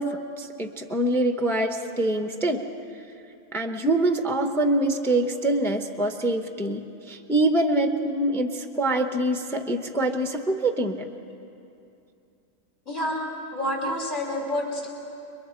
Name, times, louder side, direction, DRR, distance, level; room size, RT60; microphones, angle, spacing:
voice 1, 0.0-2.7 3.5-11.1, right 1 dB, ahead, 5 dB, 0.7 m, -25 dB
voice 2, 12.9-13.3 13.5-14.9, left 1 dB, 35° left, -2 dB, 3.3 m, -28 dB
29.5 x 22.5 x 4.5 m, 2.7 s
omnidirectional pair, 1.4 m